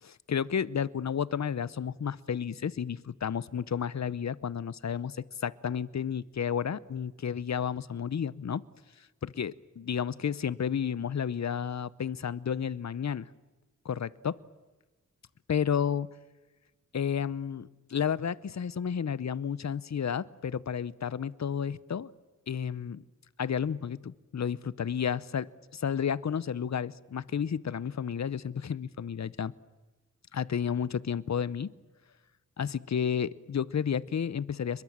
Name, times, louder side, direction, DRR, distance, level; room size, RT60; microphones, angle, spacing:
voice 1, 0.0-8.6 9.2-13.3 13.8-14.4 15.5-16.1 16.9-22.1 22.5-23.0 23.4-25.5 25.7-29.5 30.3-31.7 32.6-34.8, left 7 dB, 60° left, 19 dB, 0.8 m, -31 dB
29.0 x 22.0 x 7.4 m, 1.2 s
wide cardioid pair, 90°, 31 cm